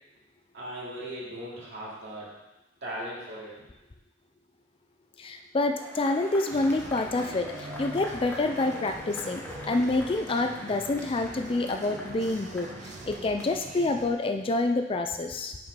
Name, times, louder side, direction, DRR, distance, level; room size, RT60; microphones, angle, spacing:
voice 1, 0.5-2.3 2.8-3.6, right 1 dB, 65° right, -6 dB, 2.6 m, -38 dB
voice 2, 5.2-15.6, left 2 dB, 30° left, 6 dB, 0.4 m, -28 dB
Cheering / Applause / Crowd, 5.7-14.4, left 1 dB, 10° left, 0.8 m, -43 dB
sound 1, 6.5-14.1, right 2 dB, 40° right, 0.6 m, -43 dB
5.8 x 5.2 x 5.2 m, 1.0 s
head